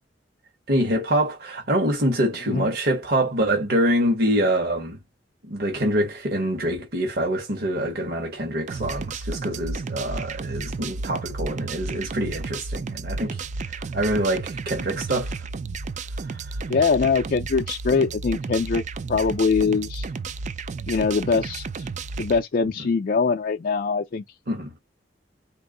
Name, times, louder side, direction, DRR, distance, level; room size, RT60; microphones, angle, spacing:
voice 1, 0.7-5.0 5.4-15.4 16.3-16.6 24.5-24.7, right 1 dB, 60° right, 1.4 m, -25 dB
sound 1, 8.7-22.4, right 4 dB, 40° right, 0.4 m, -32 dB
voice 2, 16.7-18.8 19.1-20.1 20.9-21.7 22.2-24.2, left 5 dB, 50° left, 0.4 m, -22 dB
4.4 x 2.0 x 3.7 m
head